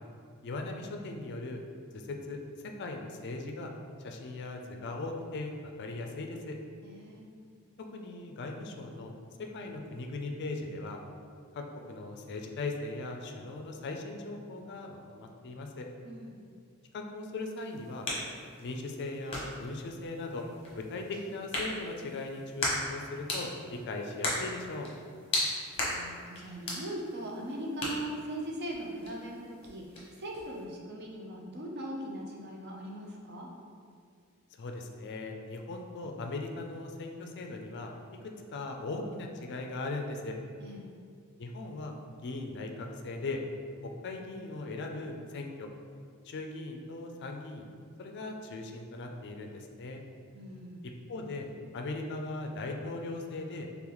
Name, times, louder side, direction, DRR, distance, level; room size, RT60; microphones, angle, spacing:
voice 1, 0.4-1.6 1.9-2.4 2.8-3.7 4.0-6.6 7.9-9.1 9.4-11.0 11.5-15.9 16.9-18.1 18.6-20.4 20.8-24.9 34.6-37.9 38.5-40.3 41.4-41.9 42.2-43.4 43.8-45.7 46.2-47.7 48.0-50.0 50.8-53.7, left 2 dB, 50° left, 3 dB, 0.4 m, -39 dB
voice 2, 6.8-7.2 16.0-16.4 25.7-29.8 30.2-33.5 40.6-40.8 50.3-50.8, right 1 dB, 50° right, -1 dB, 0.6 m, -40 dB
sound 1, 17.4-30.6, left 1 dB, 25° left, 0.9 m, -38 dB
3.9 x 3.5 x 3.0 m, 2.1 s
head